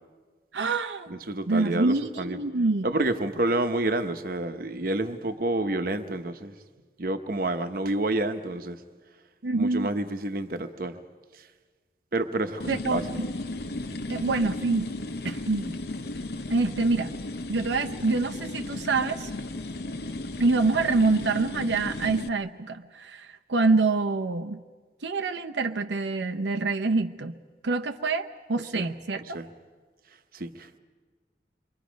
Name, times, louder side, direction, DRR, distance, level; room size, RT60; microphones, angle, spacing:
voice 1, 0.5-1.1 1.5-2.9 9.4-9.9 12.7-13.3 14.1-14.9 15.2-15.8 16.5-17.1 17.5-19.3 20.4-24.6 25.0-27.3 27.6-29.4, right 3 dB, 90° right, 5 dB, 0.7 m, -26 dB
voice 2, 1.1-2.4 2.8-6.5 7.0-8.8 9.5-11.0 12.1-13.2 28.7-28.9 29.3-29.5 30.3-30.8, right 2 dB, 55° right, 8 dB, 1.0 m, -29 dB
sound 1, 12.6-22.3, left 2 dB, 60° left, 0.8 m, -35 dB
28.0 x 23.5 x 5.2 m, 1.4 s
head